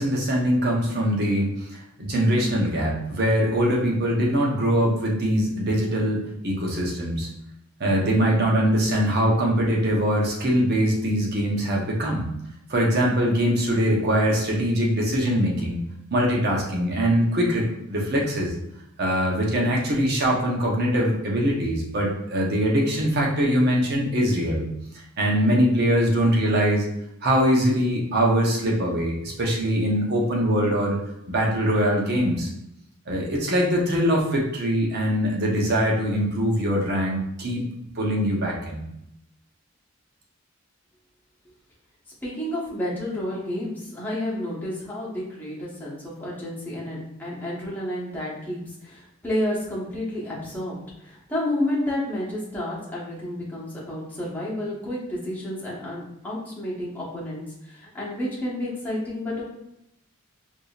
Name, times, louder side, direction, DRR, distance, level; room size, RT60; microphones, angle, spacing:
voice 1, 0.0-1.5 2.0-7.3 7.8-12.3 12.7-15.8 16.1-17.6 17.9-18.5 19.0-24.7 25.2-26.9 27.2-31.0 31.3-32.5 33.1-37.6 38.0-38.8, equal, 50° right, -2 dB, 0.8 m, -22 dB
voice 2, 42.2-50.8 51.0-59.4, left 1 dB, 10° left, -7 dB, 1.1 m, -30 dB
4.8 x 2.7 x 2.4 m, 0.82 s
head